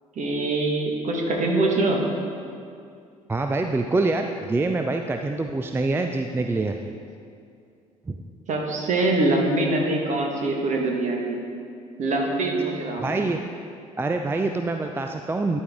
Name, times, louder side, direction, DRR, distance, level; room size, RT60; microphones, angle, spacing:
voice 1, 0.1-2.1 8.5-11.4 12.0-13.1, right 2 dB, 45° right, 0 dB, 1.5 m, -24 dB
voice 2, 3.3-6.8 8.1-8.2 13.0-13.4 14.0-15.6, right 3 dB, 15° right, 5 dB, 0.4 m, -25 dB
12.0 x 4.4 x 3.6 m, 2.4 s
hypercardioid pair, 55°, 18 cm